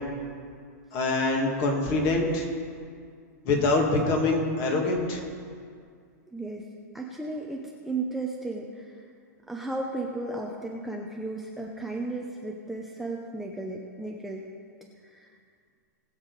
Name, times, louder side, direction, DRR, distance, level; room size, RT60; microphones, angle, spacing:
voice 1, 0.9-2.5 3.4-5.2, left 2 dB, 40° left, 0 dB, 2.4 m, -24 dB
voice 2, 6.3-6.7 6.9-9.1 9.5-14.5 15.0-15.3, right 2 dB, ahead, -1 dB, 0.7 m, -34 dB
20.0 x 7.1 x 4.1 m, 2.2 s
hypercardioid pair, 145°, 9 cm